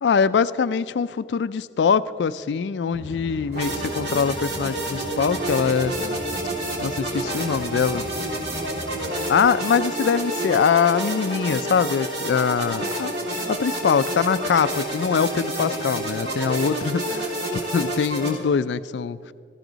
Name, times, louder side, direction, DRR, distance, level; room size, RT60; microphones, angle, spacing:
voice 1, 0.0-5.9 6.8-8.1 9.3-13.1 13.5-19.3, left 6 dB, 75° left, 15 dB, 0.4 m, -23 dB
sound 1, 2.9-9.1, equal, 15° right, 0.9 m, -39 dB
sound 2, 3.5-18.3, right 1 dB, 75° right, 3.3 m, -29 dB
18.5 x 14.5 x 3.9 m, 2.4 s
head